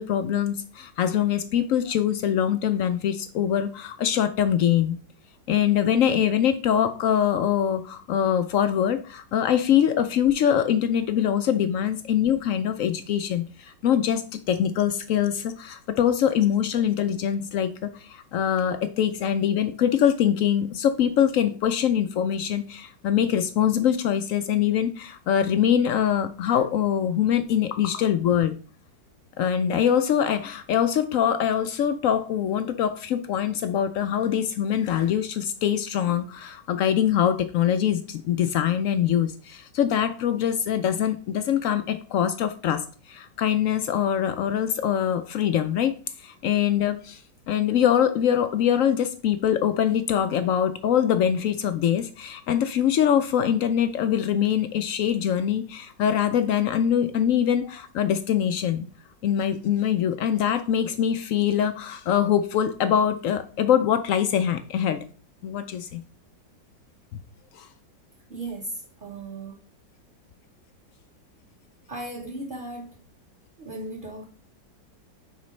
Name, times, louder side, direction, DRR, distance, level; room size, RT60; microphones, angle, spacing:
voice 1, 0.0-5.0 5.5-28.5 29.4-45.9 46.2-58.8 59.2-65.1 65.4-66.0 67.5-67.7, left 9 dB, 80° left, 9 dB, 0.7 m, -23 dB
voice 2, 68.3-68.7 69.0-69.6 71.9-72.9 73.6-74.2, right 2 dB, 35° right, -2 dB, 1.1 m, -36 dB
10.0 x 4.1 x 3.2 m, 0.39 s
omnidirectional pair, 1.9 m